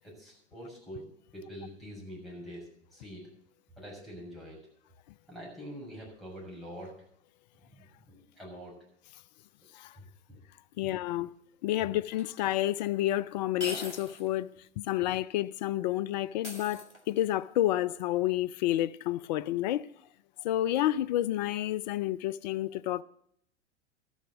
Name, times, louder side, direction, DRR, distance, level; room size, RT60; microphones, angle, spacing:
voice 1, 0.0-1.1 1.3-3.3 3.8-4.6 5.3-6.9 7.6-8.8 9.9-10.4 10.8-11.0 15.0-15.1, equal, ahead, 6.7 m, -45 dB
voice 2, 10.8-11.3 11.6-14.5 14.8-19.9 20.4-23.0, left 14 dB, 40° left, 0.4 m, -30 dB
sound 1, 12.2-12.3 13.6-14.3 14.7-14.8 16.4-17.3, left 1 dB, 85° left, 1.8 m, -41 dB
13.0 x 7.2 x 7.9 m
figure-of-eight pair, 90°, 34 cm